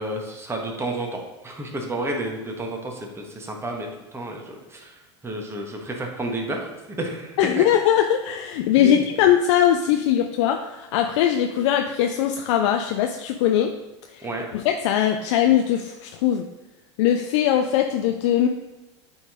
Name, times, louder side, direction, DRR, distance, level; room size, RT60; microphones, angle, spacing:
voice 1, 0.0-7.6 8.8-9.0 14.2-14.5, right 1 dB, 15° right, 1 dB, 1.3 m, -31 dB
voice 2, 7.4-13.7 14.1-14.3 14.5-16.5 17.0-18.5, left 10 dB, 70° left, 5 dB, 0.5 m, -21 dB
8.3 x 3.9 x 3.7 m, 1.1 s
hypercardioid pair, 90°, 16 cm